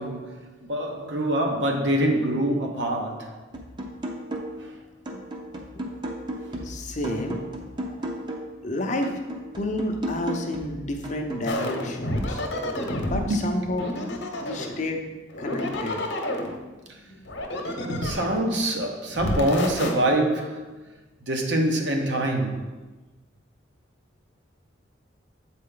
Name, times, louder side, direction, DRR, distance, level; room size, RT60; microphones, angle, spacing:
voice 1, 0.0-3.4 4.6-4.7 6.4-6.7 7.8-7.9 13.1-13.5 15.6-15.8 17.9-20.8 21.3-22.7, right 1 dB, 65° right, 0.9 m, -25 dB
sound 1, 3.5-4.7 5.1-8.6 9.0-11.5, equal, 25° right, 0.7 m, -35 dB
voice 2, 6.6-7.4 8.6-9.1 9.6-12.4 13.0-13.9 14.4-15.0 15.4-16.0 17.1-17.2, left 1 dB, 40° left, 0.6 m, -30 dB
sound 2, 11.5-13.2 13.8-14.8 15.3-16.6 17.2-18.5 19.1-19.9, left 1 dB, 60° left, 0.9 m, -29 dB
7.8 x 4.2 x 3.8 m
head